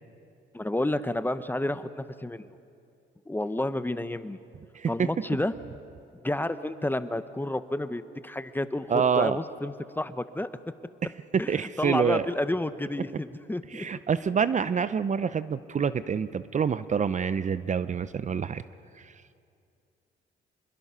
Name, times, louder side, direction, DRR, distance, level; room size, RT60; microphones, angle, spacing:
voice 1, 0.5-2.4 3.3-4.4 4.9-5.5 6.2-10.5 11.4-13.9, left 1 dB, 10° left, 12 dB, 0.8 m, -30 dB
voice 2, 8.9-9.4 11.5-12.2 13.7-18.6, right 6 dB, 40° right, 14 dB, 0.6 m, -27 dB
26.5 x 21.5 x 5.6 m, 2.5 s
cardioid pair, 90°, 20 cm